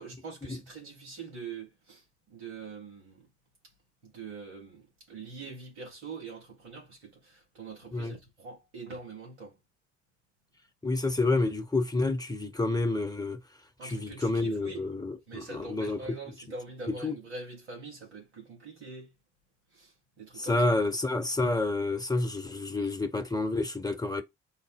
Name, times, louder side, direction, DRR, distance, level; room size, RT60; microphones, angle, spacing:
voice 1, 0.0-3.3 4.0-9.5 13.8-14.8 15.3-19.1 19.7-19.9 20.2-20.7, right 4 dB, 85° right, 1.6 m, -44 dB
voice 2, 10.8-13.4 13.8-16.0 17.0-17.1 20.4-24.2, left 2 dB, 10° left, 1.1 m, -29 dB
4.0 x 2.1 x 3.6 m
figure-of-eight pair, 40°, 33 cm